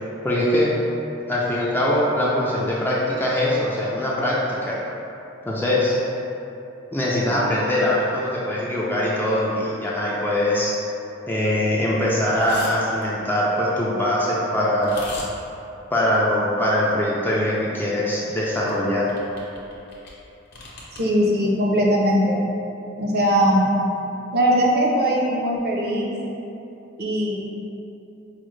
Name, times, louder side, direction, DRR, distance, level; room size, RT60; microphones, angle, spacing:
voice 1, 0.2-0.8 1.3-4.8 5.5-5.9 6.9-10.7 11.3-15.0 15.9-19.1, left 1 dB, 10° left, -6 dB, 0.3 m, -22 dB
sound 1, 12.3-12.7 13.0-13.1 14.8-15.3 18.3-18.8 19.1-20.1 20.5-21.0, left 2 dB, 55° left, 0.8 m, -37 dB
voice 2, 20.9-22.4 23.0-23.7 24.3-26.1 27.0-27.4, equal, 55° right, -3 dB, 0.6 m, -20 dB
4.9 x 2.1 x 3.1 m, 2.9 s
head